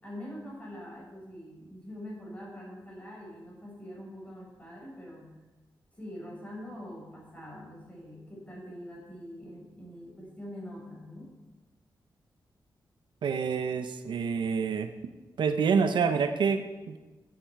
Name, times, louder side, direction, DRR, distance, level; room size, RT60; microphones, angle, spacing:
voice 1, 0.0-5.3 6.0-11.3, equal, 20° left, -2 dB, 5.0 m, -44 dB
voice 2, 13.2-15.1 15.4-17.0, right 6 dB, 80° right, 9 dB, 0.8 m, -27 dB
14.5 x 9.3 x 4.6 m, 1.2 s
wide cardioid pair, 110°, 8 cm